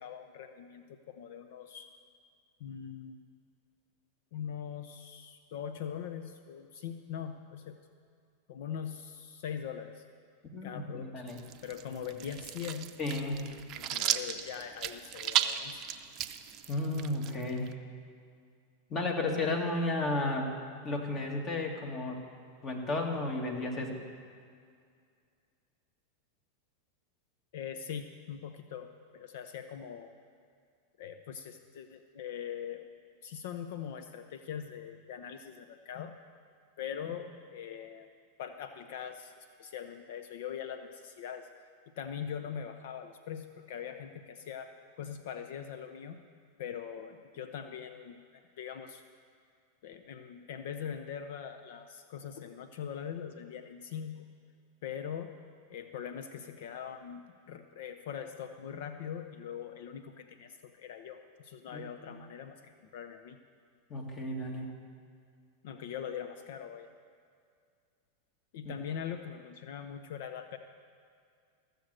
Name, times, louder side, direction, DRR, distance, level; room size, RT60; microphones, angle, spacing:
voice 1, 0.0-1.9 2.6-3.2 4.3-7.8 8.5-10.0 10.6-11.1 11.6-13.0 13.5-15.8 27.5-30.1 31.0-32.8 33.2-36.1 36.8-38.1 38.4-41.5 42.0-46.2 46.6-49.0 49.8-54.3 54.8-55.3 55.7-63.4 65.6-66.9 68.5-70.6, left 8 dB, 65° left, 8 dB, 0.6 m, -42 dB
voice 2, 10.5-11.4 11.9-12.0 13.0-13.5 16.7-17.7 18.9-20.5 20.8-22.2 22.6-24.0 61.7-62.2 63.9-64.7 68.6-68.7, left 2 dB, 35° left, 2 dB, 2.0 m, -33 dB
sound 1, 11.3-17.7, right 11 dB, 45° right, 0.6 m, -35 dB
14.5 x 6.7 x 7.6 m, 2.2 s
hypercardioid pair, 100°, 0 cm